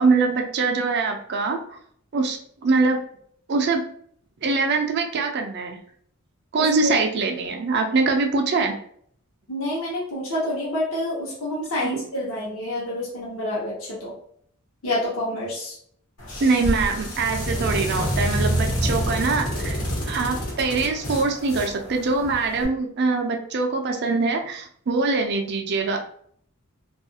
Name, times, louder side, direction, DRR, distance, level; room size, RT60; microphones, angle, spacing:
voice 1, 0.0-1.8 2.1-3.0 3.5-3.8 4.4-5.8 6.5-8.7 11.8-11.9 16.4-19.8 20.1-26.0, right 4 dB, 50° right, 4 dB, 0.4 m, -23 dB
voice 2, 6.6-6.9 9.5-14.1 14.8-15.8, left 1 dB, 65° left, -6 dB, 0.8 m, -28 dB
sound 1, 16.2-22.6, equal, 85° left, 1.1 m, -27 dB
2.7 x 2.4 x 2.7 m, 0.63 s
head